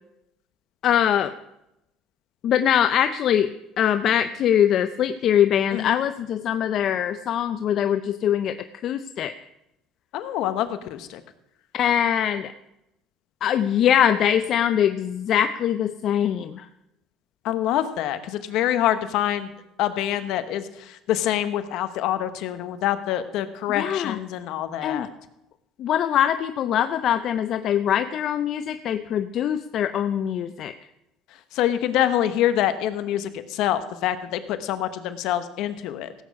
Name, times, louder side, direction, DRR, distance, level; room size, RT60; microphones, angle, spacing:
voice 1, 0.8-1.3 2.4-3.5 3.8-8.6 8.8-9.3 11.7-12.5 13.4-16.7 23.8-24.2 24.8-25.1 25.8-30.7, left 9 dB, 50° left, 10 dB, 0.5 m, -22 dB
voice 2, 10.1-11.2 17.4-19.5 19.8-25.1 31.5-36.1, left 11 dB, 65° left, 10 dB, 1.0 m, -25 dB
16.5 x 8.4 x 4.8 m, 0.88 s
cardioid pair, 115°, 0 cm